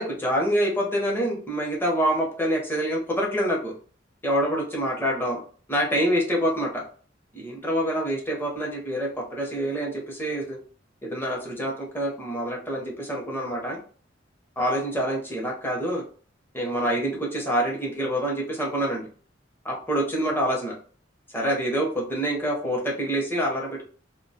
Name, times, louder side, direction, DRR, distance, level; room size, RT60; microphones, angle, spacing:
voice 1, 0.0-3.7 4.2-5.4 5.7-6.8 7.3-10.6 11.0-13.8 14.6-16.0 16.5-19.1 19.6-20.7 21.3-23.9, equal, 10° left, -2 dB, 0.6 m, -26 dB
2.3 x 2.1 x 2.6 m, 0.43 s
head